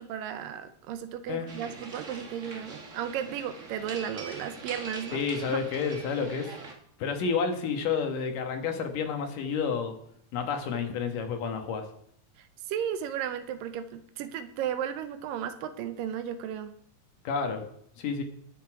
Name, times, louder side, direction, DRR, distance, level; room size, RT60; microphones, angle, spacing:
voice 1, 0.0-5.2 5.5-5.6 12.4-16.7, right 9 dB, 80° right, 10 dB, 2.4 m, -34 dB
sound 1, 1.5-6.7, right 3 dB, 50° right, 0.8 m, -43 dB
voice 2, 5.1-6.6 7.0-9.9 10.3-11.8 17.2-17.6 18.0-18.2, left 6 dB, 70° left, 5 dB, 2.9 m, -30 dB
19.0 x 7.1 x 4.8 m, 0.67 s
omnidirectional pair, 4.1 m